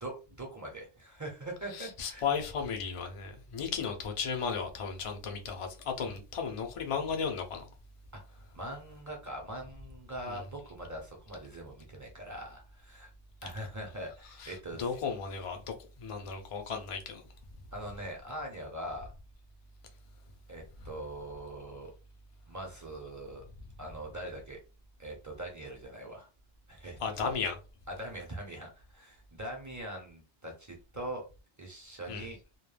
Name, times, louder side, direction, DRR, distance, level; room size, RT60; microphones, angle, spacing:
voice 1, 0.0-2.2 8.1-8.2 8.5-13.1 13.4-14.9 17.7-19.1 20.5-21.9 22.5-23.4 23.8-24.6 25.0-26.3 26.7-27.3 28.0-31.2 31.6-32.4, right 1 dB, 25° right, 0.4 m, -42 dB
voice 2, 1.7-7.7 10.3-10.4 14.4-17.3 27.0-27.6 32.1-32.3, left 6 dB, 55° left, 0.3 m, -35 dB
2.2 x 2.1 x 3.2 m
omnidirectional pair, 1.2 m